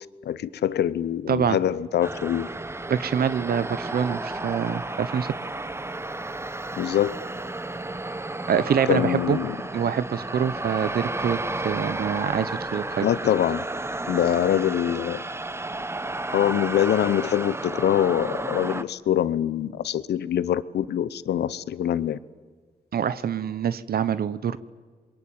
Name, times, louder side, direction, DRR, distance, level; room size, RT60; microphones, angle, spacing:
voice 1, 0.2-2.5 6.8-7.2 8.9-9.6 13.0-13.6 14.1-15.2 16.3-22.2, left 10 dB, 85° left, 17 dB, 0.8 m, -24 dB
voice 2, 1.3-1.6 2.9-5.3 8.5-9.4 9.7-11.4 11.6-13.1 22.9-24.6, right 8 dB, 65° right, 15 dB, 0.9 m, -25 dB
sound 1, 2.0-18.8, right 2 dB, 15° right, 0.9 m, -32 dB
26.5 x 22.5 x 8.9 m, 1.5 s
cardioid pair, 80°, 17 cm